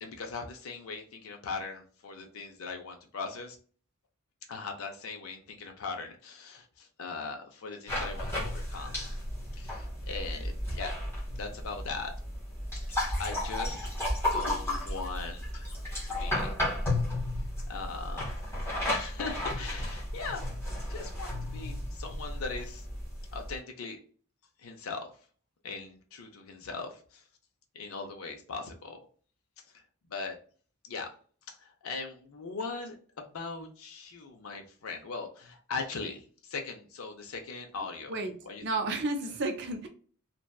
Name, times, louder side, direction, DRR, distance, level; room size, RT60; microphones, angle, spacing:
voice 1, 0.0-3.6 4.5-9.0 9.5-11.0 11.3-12.1 12.9-14.0 14.3-15.7 16.1-16.5 17.7-18.3 18.9-20.4 20.9-22.9 23.3-24.0 24.6-25.1 25.6-27.2 27.7-29.0 29.7-29.8 30.1-30.4 30.8-31.1 31.5-38.1 38.5-38.6, left 4 dB, 70° left, 4 dB, 0.5 m, -40 dB
sound 1, 7.9-23.6, left 1 dB, 10° left, 1.0 m, -33 dB
voice 2, 38.6-39.9, right 2 dB, 50° right, 5 dB, 0.6 m, -31 dB
2.7 x 2.2 x 2.2 m, 0.43 s
head